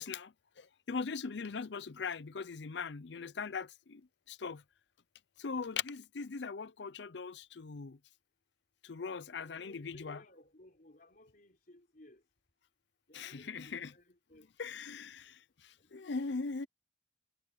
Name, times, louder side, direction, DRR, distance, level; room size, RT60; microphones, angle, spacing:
voice 1, 0.0-4.6 5.4-8.0 8.8-10.2 13.1-13.9 14.6-16.7, left 5 dB, 70° left, 0.6 m, -40 dB
voice 2, 9.4-12.2 13.1-14.7 15.1-15.2 15.8-16.6, left 1 dB, 50° left, 4.2 m, -60 dB
head